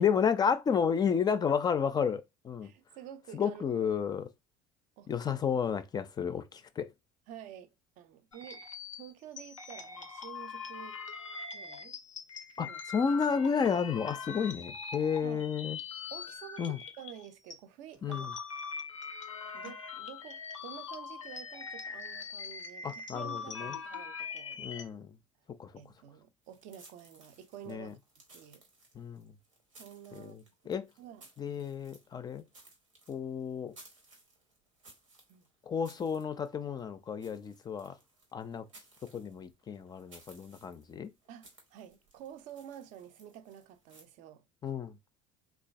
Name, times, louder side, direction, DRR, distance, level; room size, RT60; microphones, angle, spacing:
voice 1, 0.0-2.7 3.3-4.3 5.1-6.9 12.6-12.7 12.9-15.8 16.6-16.8 18.0-18.3 22.8-23.8 24.6-25.2 25.5-25.8 27.7-27.9 28.9-29.3 30.1-30.9 31.4-32.4 33.1-33.8 35.7-38.0 38.3-38.7 39.0-41.1 44.6-45.0, left 7 dB, 25° left, 0.4 m, -32 dB
voice 2, 2.6-3.9 5.0-5.1 7.3-7.7 8.0-8.6 9.0-11.0 11.5-12.0 12.6-12.8 15.2-15.5 16.1-18.3 19.5-24.7 25.8-27.9 28.3-28.6 29.8-30.5 31.0-31.2 35.3-35.4 41.3-44.4, right 10 dB, 55° right, 0.5 m, -49 dB
sound 1, 8.3-17.6 17.9-24.8, left 5 dB, 90° left, 0.4 m, -42 dB
sound 2, 26.4-44.0, right 2 dB, 85° right, 0.9 m, -60 dB
3.1 x 2.3 x 2.3 m
figure-of-eight pair, 65°, 16 cm